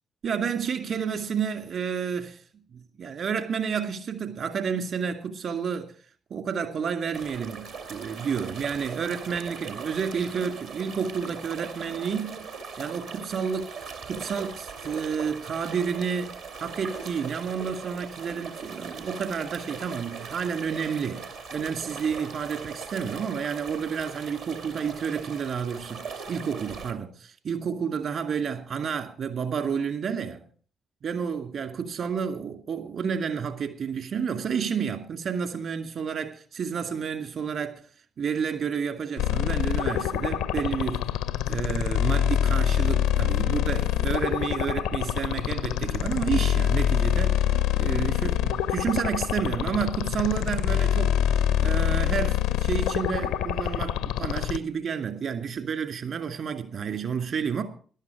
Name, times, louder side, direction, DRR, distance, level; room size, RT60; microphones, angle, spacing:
voice 1, 0.2-2.4 2.7-5.9 6.3-12.4 12.8-16.3 16.6-30.4 31.0-37.8 38.2-41.1 41.5-57.6, right 6 dB, 60° right, 2.2 m, -30 dB
sound 1, 7.1-26.9, right 5 dB, 80° right, 2.2 m, -40 dB
sound 2, 39.2-54.6, left 10 dB, 75° left, 0.6 m, -25 dB
14.0 x 11.5 x 4.8 m
figure-of-eight pair, 40°, 0 cm